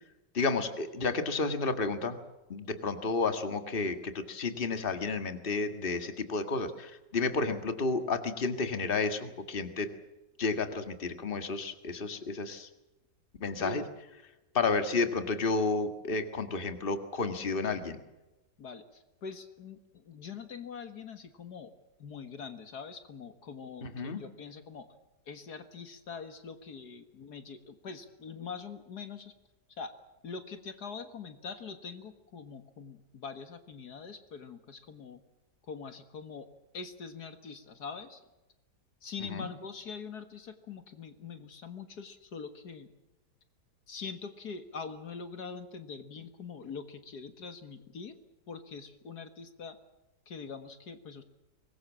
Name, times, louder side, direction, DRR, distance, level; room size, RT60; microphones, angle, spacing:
voice 1, 0.3-2.2 2.5-9.9 10.4-12.7 13.4-13.8 14.5-18.0 23.8-24.2 39.3-39.5, left 4 dB, 30° left, 9 dB, 1.9 m, -31 dB
voice 2, 18.6-21.7 22.0-24.9 25.3-29.3 29.7-29.9 30.2-35.2 35.6-36.5 36.7-38.2 39.0-42.9 43.9-48.2 48.5-49.8 50.3-51.2, left 5 dB, 65° left, 9 dB, 2.1 m, -43 dB
24.5 x 21.0 x 7.4 m, 1.0 s
omnidirectional pair, 1.8 m